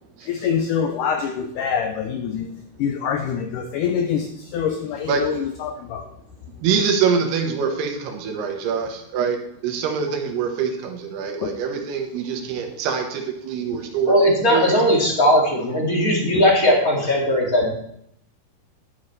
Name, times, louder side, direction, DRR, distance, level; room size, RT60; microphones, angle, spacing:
voice 1, 0.2-2.5 2.8-6.1 11.4-11.5 13.7-13.8 16.3-16.4, left 7 dB, 90° left, 5 dB, 1.8 m, -25 dB
voice 2, 6.6-9.4 9.6-14.1 14.5-14.8, right 6 dB, 85° right, 3 dB, 3.2 m, -24 dB
voice 3, 14.0-17.7, equal, 30° left, -2 dB, 2.0 m, -18 dB
11.5 x 10.0 x 3.2 m, 0.72 s
omnidirectional pair, 4.5 m